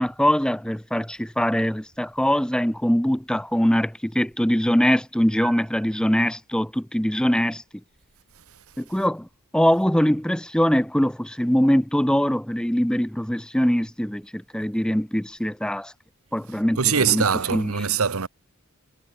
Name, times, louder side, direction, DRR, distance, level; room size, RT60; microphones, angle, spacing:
voice 1, 0.0-7.6 8.8-9.3 9.5-15.9 16.3-17.2 17.5-17.7, equal, 5° left, 0.8 m, -22 dB
voice 2, 16.8-18.3, right 6 dB, 80° right, 1.2 m, -22 dB
head